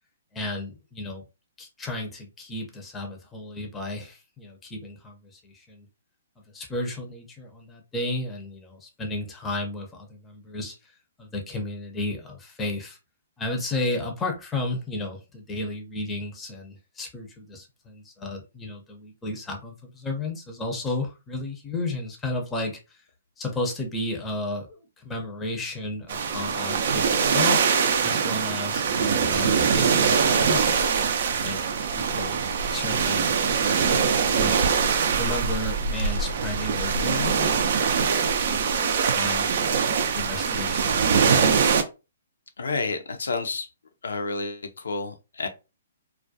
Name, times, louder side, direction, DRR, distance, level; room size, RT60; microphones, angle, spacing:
voice 1, 0.3-1.2 1.6-5.9 6.5-13.0 13.4-23.0 23.4-33.8 34.1-34.8 35.2-37.9 38.1-38.7 39.0-39.5 39.9-41.8, left 2 dB, 15° left, 0.6 m, -33 dB
sound 1, 26.1-41.8, right 6 dB, 60° right, 0.4 m, -23 dB
voice 2, 42.6-43.7 44.0-45.5, left 3 dB, 75° left, 0.5 m, -30 dB
2.3 x 2.1 x 2.6 m
hypercardioid pair, 130°, 0 cm